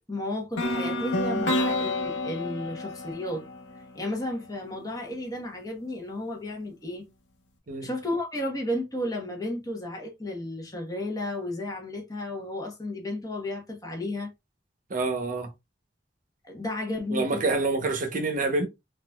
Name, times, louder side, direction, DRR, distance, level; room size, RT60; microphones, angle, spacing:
voice 1, 0.1-3.4 3.9-7.1 7.8-14.3 16.4-17.5, left 1 dB, 20° left, 1.1 m, -33 dB
sound 1, 0.6-4.5, left 1 dB, 80° left, 0.9 m, -29 dB
voice 2, 14.9-15.5 17.1-18.7, right 3 dB, 50° right, 0.8 m, -27 dB
4.1 x 2.5 x 2.3 m
head